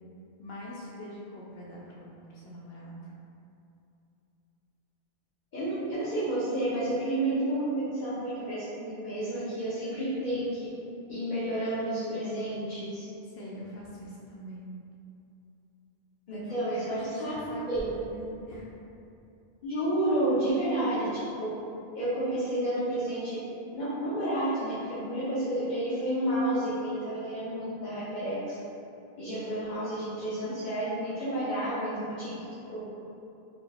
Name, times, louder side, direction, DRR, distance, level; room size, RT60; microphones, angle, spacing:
voice 1, 0.4-3.1 13.3-14.7 16.3-18.7, left 1 dB, 80° left, -5 dB, 0.9 m, -43 dB
voice 2, 5.5-10.7 11.1-13.0 16.3-17.3 17.7-17.8 19.6-21.0 21.4-21.5 21.9-23.4 23.7-28.6 29.2-32.8, right 1 dB, 50° left, -12 dB, 1.0 m, -30 dB
4.5 x 2.0 x 4.1 m, 2.8 s
omnidirectional pair, 1.0 m